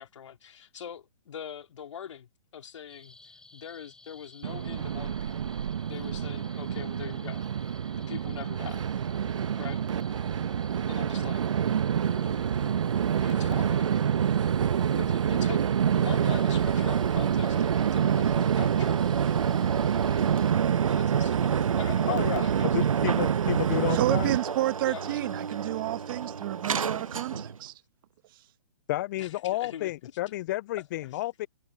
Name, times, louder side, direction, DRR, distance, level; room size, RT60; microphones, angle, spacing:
voice 1, 0.0-5.5 5.9-7.4 8.1-8.9 9.6-9.8 10.9-11.4 12.0-12.5 13.2-14.0 15.0-19.0 20.9-22.9 24.8-25.3 25.7-25.8 29.2-30.1 31.0-31.2, left 9 dB, 60° left, 2.4 m, -43 dB
sound 1, 2.9-20.5, left 2 dB, 5° left, 5.3 m, -54 dB
Train, 4.4-24.4, right 8 dB, 65° right, 1.0 m, -26 dB
sound 2, 16.0-27.7, right 6 dB, 85° right, 0.5 m, -35 dB
voice 2, 22.1-22.4 22.7-24.4 28.9-31.5, left 16 dB, 35° left, 0.4 m, -31 dB
voice 3, 23.9-27.7, right 16 dB, 40° right, 1.1 m, -30 dB
figure-of-eight pair, 130°, 17 cm